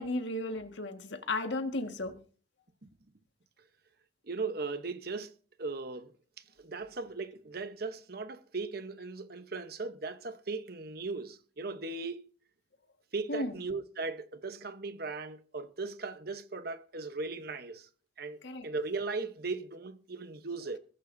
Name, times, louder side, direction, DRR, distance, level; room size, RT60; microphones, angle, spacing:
voice 1, 0.0-2.2 13.3-13.5 18.4-18.7, left 2 dB, 80° left, 1.8 m, -34 dB
voice 2, 4.3-5.3 5.6-6.1 6.6-12.2 13.1-17.9 18.2-20.8, right 3 dB, 55° right, 1.0 m, -38 dB
21.5 x 11.0 x 2.7 m
head